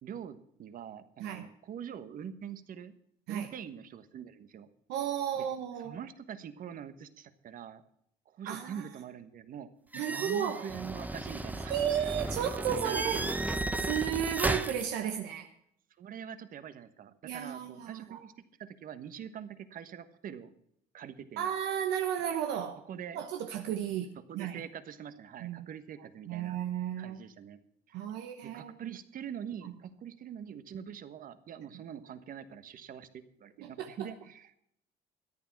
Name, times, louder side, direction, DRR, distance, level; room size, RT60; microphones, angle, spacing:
voice 1, 0.0-2.9 3.3-4.7 5.4-5.5 5.8-7.8 8.2-9.7 10.1-14.0 16.0-18.3 18.6-20.5 20.9-21.5 22.9-23.2 24.3-26.6 27.0-27.6 27.9-28.0 28.4-34.6, right 8 dB, 55° right, 11 dB, 1.3 m, -44 dB
voice 2, 4.9-6.0 8.4-8.8 9.9-10.6 11.7-13.3 13.9-15.5 17.2-18.2 21.4-22.8 23.1-24.6 25.4-25.7 26.3-27.2 27.9-29.0 29.6-29.7 33.6-34.1, right 9 dB, 90° right, 5 dB, 1.1 m, -34 dB
sound 1, 9.9-14.9, right 2 dB, 10° right, 0.9 m, -34 dB
14.0 x 10.5 x 5.9 m, 0.70 s
cardioid pair, 110°, 17 cm